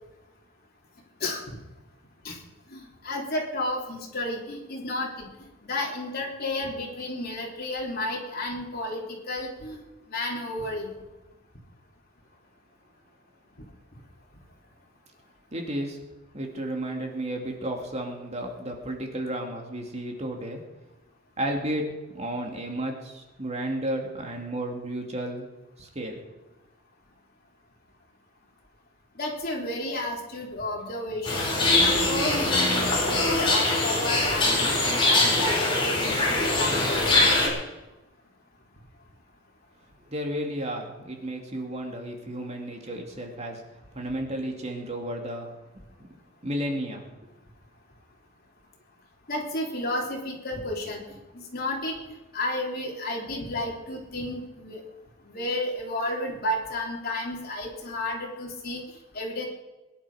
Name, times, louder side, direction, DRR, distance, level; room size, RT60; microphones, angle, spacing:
voice 1, 1.2-1.6 2.2-2.4 2.7-5.3 5.6-9.8 10.1-10.9 29.2-31.5 31.8-37.0 49.3-51.0 51.3-52.0 52.3-54.8 55.2-58.8 59.1-59.5, left 1 dB, 50° left, -1 dB, 3.6 m, -32 dB
voice 2, 15.5-16.0 16.3-20.6 21.4-25.5 25.8-26.2 40.1-43.6 43.9-45.5 46.4-47.0, right 1 dB, 35° right, 2 dB, 2.5 m, -32 dB
sound 1, 31.2-37.5, left 2 dB, 25° left, 4.6 m, -23 dB
22.0 x 11.0 x 5.1 m, 1.1 s
head